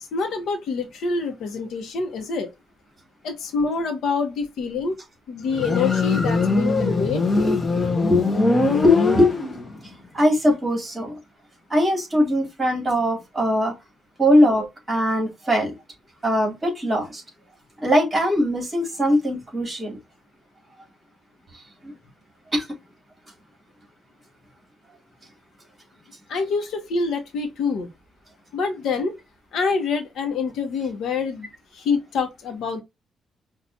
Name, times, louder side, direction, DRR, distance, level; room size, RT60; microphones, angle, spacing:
voice 1, 0.0-2.5 3.2-5.0 5.3-7.2 26.3-27.9 28.5-29.1 29.5-31.5 31.7-32.8, left 4 dB, 70° left, 0.8 m, -26 dB
Motorcycle, 5.5-9.9, left 3 dB, 25° left, 0.7 m, -21 dB
voice 2, 7.4-8.2 8.8-9.4 10.1-11.1 11.7-13.7 14.2-15.8 16.2-17.2 17.8-20.0 21.8-21.9 22.5-22.7, equal, 15° right, 2.4 m, -21 dB
5.6 x 2.4 x 2.7 m
cardioid pair, 145°, 0 cm